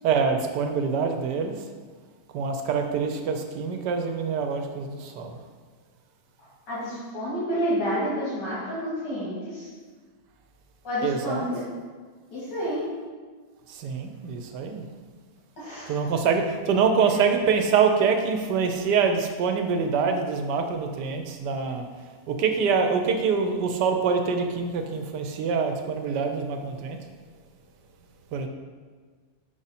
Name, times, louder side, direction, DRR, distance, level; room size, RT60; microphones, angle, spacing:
voice 1, 0.0-1.6 2.3-5.4 11.0-11.5 13.7-14.9 15.9-21.9 22.3-27.0 28.3-28.5, right 5 dB, 75° right, 5 dB, 1.2 m, -25 dB
voice 2, 6.4-9.7 10.8-11.6 12.3-12.8 15.6-16.0, equal, 75° left, -10 dB, 2.3 m, -29 dB
5.4 x 5.0 x 4.1 m, 1.5 s
omnidirectional pair, 1.9 m